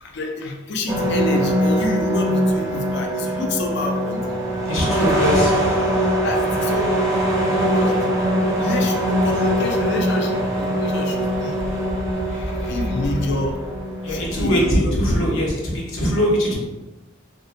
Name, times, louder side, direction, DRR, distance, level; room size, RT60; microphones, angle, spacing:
voice 1, 0.0-4.2 5.0-5.4 6.2-6.9 7.7-8.1 8.5-11.6 12.3-13.6 14.1-15.0, left 2 dB, 55° left, 2 dB, 0.4 m, -28 dB
sound 1, 0.9-14.7, equal, 15° right, 0.6 m, -22 dB
voice 2, 4.7-5.5 14.0-16.5, equal, 70° left, -3 dB, 0.8 m, -21 dB
2.5 x 2.1 x 2.5 m, 1.1 s
head